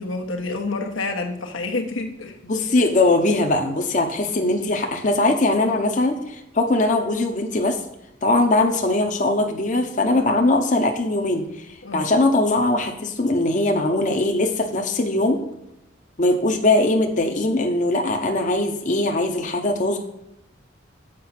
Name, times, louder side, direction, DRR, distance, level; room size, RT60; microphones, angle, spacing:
voice 1, 0.0-2.4 11.8-12.1, left 3 dB, 85° left, 3 dB, 1.3 m, -28 dB
voice 2, 2.4-7.8 8.2-15.4 16.2-20.0, left 2 dB, 40° left, 3 dB, 0.8 m, -21 dB
7.6 x 5.3 x 5.8 m, 0.86 s
head